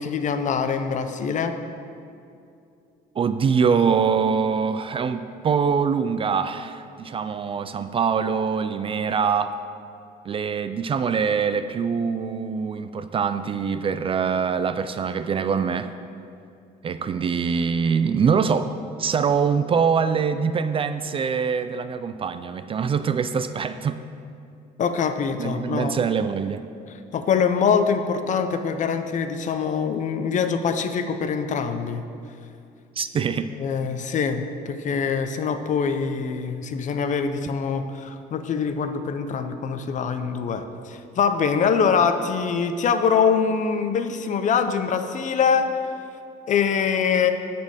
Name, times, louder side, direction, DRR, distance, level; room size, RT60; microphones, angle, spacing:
voice 1, 0.0-1.5 24.8-25.9 27.1-32.0 33.6-45.7 46.5-47.3, left 6 dB, 45° left, 8 dB, 0.7 m, -24 dB
voice 2, 3.2-9.5 10.3-15.9 16.8-18.7 19.0-24.0 25.4-26.7 33.0-33.5, right 6 dB, 30° right, 11 dB, 0.3 m, -24 dB
9.6 x 4.3 x 7.3 m, 2.5 s
cardioid pair, 110°, 17 cm